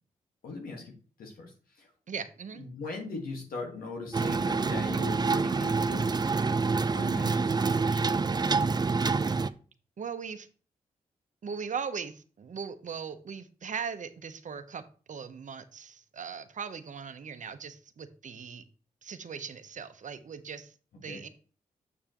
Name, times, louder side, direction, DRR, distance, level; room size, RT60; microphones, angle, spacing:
voice 1, 0.4-0.9 1.2-1.9 2.6-6.2 6.8-8.0 21.1-21.2, left 3 dB, 80° left, 0 dB, 1.6 m, -40 dB
voice 2, 2.1-2.7 10.0-10.5 11.4-18.6 19.0-21.3, right 6 dB, 60° right, 10 dB, 0.8 m, -39 dB
sound 1, 4.1-9.5, right 4 dB, 30° right, 0.5 m, -27 dB
7.0 x 6.6 x 3.0 m, 0.39 s
supercardioid pair, 50°, 15 cm